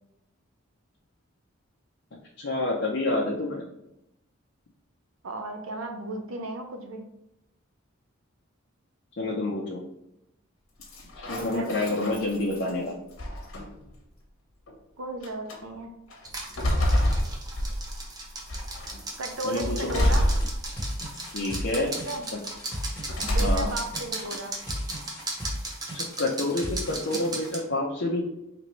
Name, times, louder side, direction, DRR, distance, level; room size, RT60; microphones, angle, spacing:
voice 1, 2.4-3.6 9.2-9.8 11.3-13.0 19.4-19.9 21.3-21.9 22.3-22.4 23.4-23.7 25.9-28.2, left 2 dB, 60° left, -2 dB, 0.6 m, -28 dB
voice 2, 5.2-7.1 11.4-11.7 15.0-16.0 19.2-20.3 21.8-22.2 23.3-24.5, right 2 dB, 90° right, 4 dB, 0.7 m, -35 dB
sound 1, 10.8-12.7 13.2-13.9 14.7-14.8 15.2-15.6 16.1-18.1 18.5-19.0 19.9-21.0 21.5-22.1 23.1-23.9, equal, 80° left, 1.0 m, -27 dB
sound 2, 16.2-27.6, right 2 dB, 20° right, 0.6 m, -37 dB
sound 3, 19.6-27.2, equal, 5° left, 1.4 m, -36 dB
4.1 x 3.0 x 3.1 m, 0.83 s
head